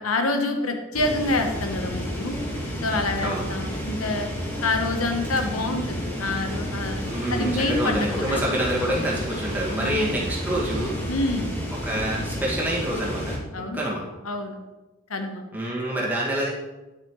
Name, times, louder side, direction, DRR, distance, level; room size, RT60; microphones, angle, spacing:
voice 1, 0.0-2.4 2.8-7.0 7.3-8.4 9.8-10.2 11.1-11.5 13.5-13.8 14.2-14.6 15.1-15.4, left 2 dB, 90° left, 5 dB, 1.0 m, -27 dB
sound 1, 0.9-13.4, equal, 10° left, 1.5 m, -31 dB
sound 2, 2.5-10.9, right 3 dB, 75° right, 1.1 m, -45 dB
voice 2, 7.0-11.0 11.8-13.4 13.7-14.0 15.5-16.5, right 1 dB, 10° right, -5 dB, 1.9 m, -27 dB
sound 3, 7.1-12.8, left 1 dB, 50° left, 1.3 m, -43 dB
9.9 x 7.1 x 3.1 m, 1.1 s
head